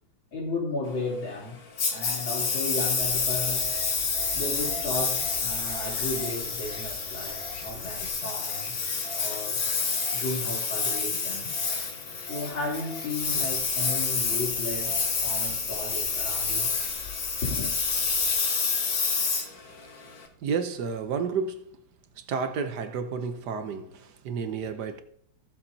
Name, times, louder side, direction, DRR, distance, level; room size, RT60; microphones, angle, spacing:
voice 1, 0.3-1.6 1.9-3.7 4.3-8.8 9.1-9.6 10.1-11.5 12.3-16.7 17.4-17.7, left 2 dB, 80° left, 4.0 m, -34 dB
Engine, 1.8-20.2, left 4 dB, 65° left, 2.2 m, -28 dB
sound 1, 3.0-18.3, left 2 dB, 30° left, 1.8 m, -45 dB
voice 2, 20.4-21.7 22.2-25.0, right 5 dB, 65° right, 1.2 m, -31 dB
15.0 x 7.4 x 2.7 m
omnidirectional pair, 2.1 m